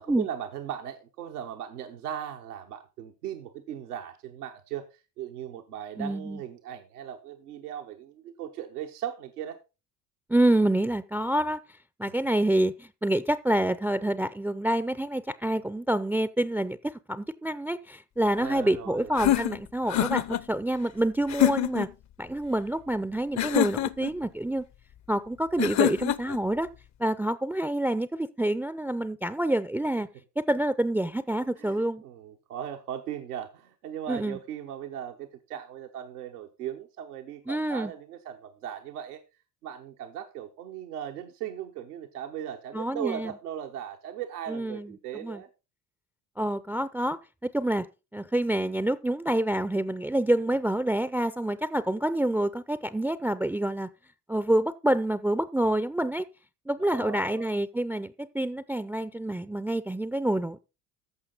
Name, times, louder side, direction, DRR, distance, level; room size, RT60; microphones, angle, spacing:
voice 1, 0.0-9.6 18.3-19.1 31.6-39.2 39.6-45.5 56.8-57.5, right 10 dB, 90° right, 1.0 m, -38 dB
voice 2, 6.0-6.4 10.3-11.6 12.0-21.9 22.2-24.6 25.1-26.7 27.0-30.1 30.4-32.0 34.1-34.4 37.5-37.9 42.7-43.3 44.5-44.9 45.2-45.4 46.4-47.2 47.4-47.9 48.1-53.9 54.3-56.2 56.7-60.6, right 1 dB, 5° right, 0.4 m, -27 dB
sound 1, 19.2-20.4 21.3-21.9 23.4-24.1 25.6-26.4, left 13 dB, 40° left, 0.7 m, -25 dB
14.5 x 5.7 x 3.9 m
hypercardioid pair, 65°, 44 cm